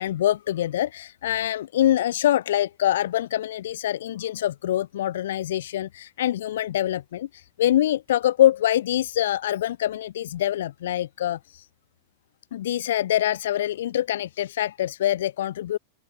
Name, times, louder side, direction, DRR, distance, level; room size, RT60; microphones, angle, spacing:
voice 1, 0.0-11.7 12.5-15.8, left 12 dB, 60° left, 0.3 m, -24 dB
open air
figure-of-eight pair, 90°, 0 cm